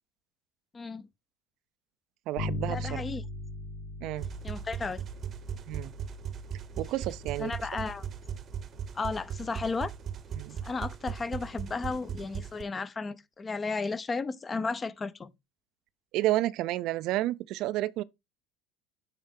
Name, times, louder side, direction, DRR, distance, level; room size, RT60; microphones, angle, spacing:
voice 1, 0.7-1.1 2.7-3.2 4.4-5.0 7.4-8.1 8.9-9.9 10.6-15.3, left 4 dB, 25° left, 0.6 m, -34 dB
voice 2, 2.3-3.0 4.0-4.3 5.7-5.9 6.8-7.5 10.4-10.6 16.1-18.0, right 16 dB, 60° right, 0.4 m, -30 dB
Bass guitar, 2.4-12.0, left 2 dB, 65° left, 1.3 m, -42 dB
sound 1, 4.2-12.6, right 8 dB, 40° right, 0.8 m, -38 dB
8.9 x 3.6 x 3.6 m
supercardioid pair, 90°, 0 cm